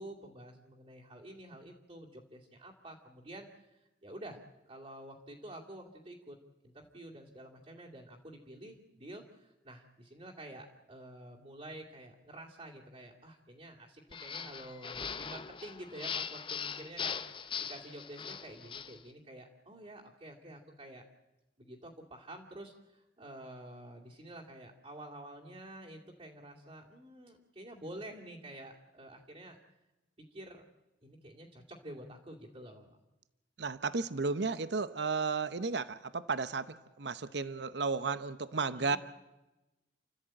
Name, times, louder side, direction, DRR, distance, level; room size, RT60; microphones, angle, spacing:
voice 1, 0.0-4.4 4.7-6.4 6.6-21.0 21.6-29.6 30.3-30.6 31.0-33.0 38.7-39.0, right 1 dB, 35° right, -5 dB, 2.6 m, -49 dB
sound 1, 14.1-19.0, left 6 dB, 30° left, 0.7 m, -40 dB
voice 2, 33.6-39.0, right 4 dB, 65° right, 13 dB, 0.8 m, -33 dB
29.5 x 13.5 x 8.9 m, 1.0 s
head